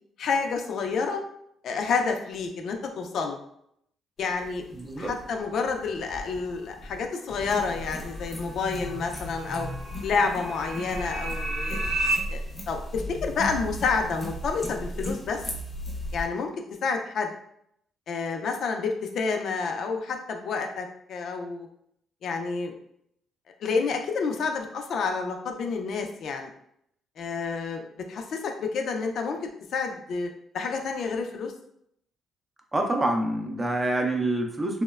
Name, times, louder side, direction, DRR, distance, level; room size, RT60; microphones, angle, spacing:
voice 1, 0.2-1.2 1.6-3.4 4.2-4.6 5.0-9.7 10.0-11.8 12.3-12.4 12.7-15.4 16.1-16.5 16.8-17.3 18.1-21.7 22.2-22.8 23.6-26.5 27.2-30.3 30.5-31.5, left 5 dB, 65° left, 4 dB, 0.4 m, -29 dB
sound 1, 4.2-16.3, equal, 30° left, 0.6 m, -36 dB
voice 2, 4.8-5.1 32.7-34.8, right 1 dB, 20° right, 2 dB, 0.5 m, -26 dB
sound 2, 8.0-12.2, right 2 dB, 65° right, 0.6 m, -33 dB
2.9 x 2.0 x 2.3 m, 0.72 s
cardioid pair, 90°, 0 cm